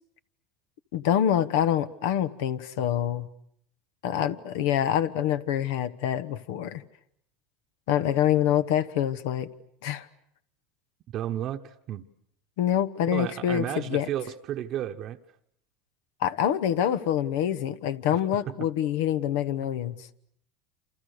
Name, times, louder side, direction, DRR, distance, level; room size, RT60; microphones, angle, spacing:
voice 1, 0.9-3.3 4.0-6.8 7.9-9.5 9.8-10.1 12.6-13.6 13.9-14.1 16.2-20.0, left 10 dB, 75° left, 12 dB, 1.3 m, -26 dB
voice 2, 11.1-12.0 13.1-15.2 18.5-18.6, right 11 dB, 50° right, 6 dB, 1.1 m, -32 dB
28.5 x 27.5 x 6.7 m, 0.69 s
supercardioid pair, 110°, 0 cm